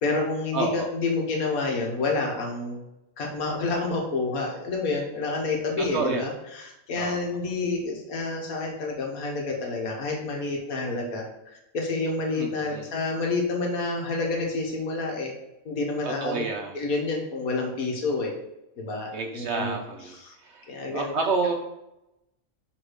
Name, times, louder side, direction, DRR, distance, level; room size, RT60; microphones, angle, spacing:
voice 1, 0.0-2.8 3.2-15.3 15.7-16.4 16.7-18.3 18.8-19.8 20.1-20.4 20.7-21.1, left 3 dB, 85° left, 1 dB, 1.7 m, -29 dB
voice 2, 0.5-0.9 5.9-6.3 6.9-7.3 12.4-12.9 16.0-16.8 19.1-20.2 20.4-20.6 20.9-21.5, right 4 dB, 60° right, 2 dB, 0.8 m, -29 dB
6.3 x 3.5 x 5.0 m, 0.91 s
omnidirectional pair, 1.5 m